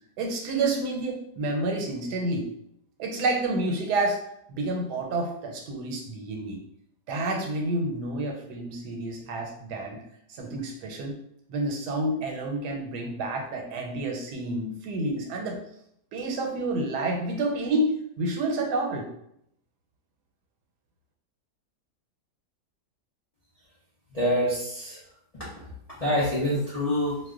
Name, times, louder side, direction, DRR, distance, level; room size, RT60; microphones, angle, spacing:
voice 1, 0.2-2.5 3.0-4.2 4.5-6.6 7.1-10.0 10.3-11.2 11.5-15.6 16.1-19.1, right 2 dB, 80° right, 1 dB, 1.2 m, -29 dB
voice 2, 24.1-25.0 25.4-25.5 26.0-27.2, equal, 75° left, -7 dB, 0.3 m, -26 dB
2.6 x 2.1 x 3.5 m, 0.74 s
omnidirectional pair, 1.7 m